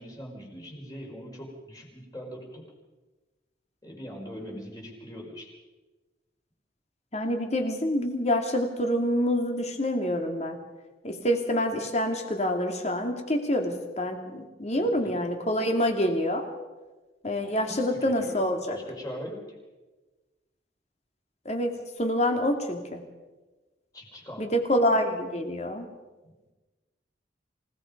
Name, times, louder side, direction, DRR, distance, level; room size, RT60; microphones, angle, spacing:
voice 1, 0.0-2.7 3.8-5.5 14.7-15.2 17.6-19.6 23.9-24.5 26.2-26.3, equal, 20° left, -1 dB, 5.4 m, -41 dB
voice 2, 7.1-10.6 11.0-16.4 17.2-18.8 21.4-23.0 24.4-25.9, equal, 35° left, 4 dB, 2.7 m, -27 dB
28.0 x 18.0 x 5.4 m, 1.2 s
head